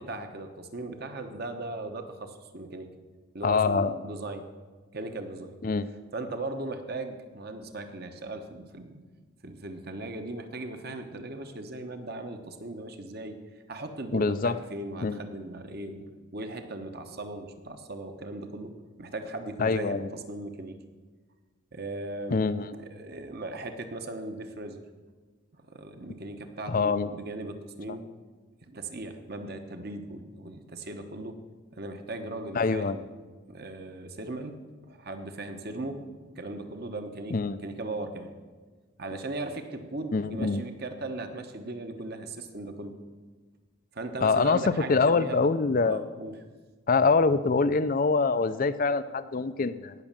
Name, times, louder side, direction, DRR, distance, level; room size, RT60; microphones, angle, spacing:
voice 1, 0.0-2.9 3.3-4.5 4.9-5.6 6.1-9.0 9.4-13.4 13.7-16.1 16.3-20.8 21.7-24.8 25.6-28.1 28.7-31.4 31.7-33.0 33.5-34.6 34.8-36.0 36.4-38.3 39.0-43.0 43.9-45.5 45.8-46.4, right 2 dB, 45° right, 6 dB, 1.1 m, -38 dB
voice 2, 3.4-3.9 5.6-5.9 14.1-14.6 15.0-15.2 19.6-20.1 22.3-22.6 26.7-27.1 32.5-33.0 37.3-37.6 40.1-40.6 44.2-44.6 44.9-46.0 46.9-49.9, left 4 dB, 40° left, 12 dB, 0.4 m, -24 dB
17.5 x 6.5 x 7.4 m, 1.4 s
head